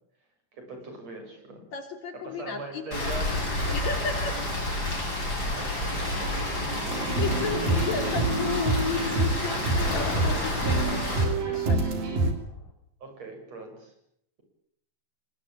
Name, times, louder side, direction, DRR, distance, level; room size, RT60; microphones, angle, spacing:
voice 1, 0.5-1.7 2.2-4.2 5.2-6.5 13.0-13.9, right 3 dB, 50° right, 4 dB, 8.5 m, -42 dB
voice 2, 1.7-2.8 3.7-4.4 6.8-12.0, left 4 dB, 55° left, 6 dB, 4.1 m, -34 dB
Rain, 2.9-11.2, left 1 dB, 25° left, 8.0 m, -29 dB
sound 1, 6.9-8.1 9.7-12.5, left 3 dB, 75° left, 6.4 m, -38 dB
sound 2, 6.9-12.3, right 3 dB, 85° right, 5.3 m, -27 dB
25.5 x 22.0 x 9.0 m, 0.74 s
omnidirectional pair, 3.9 m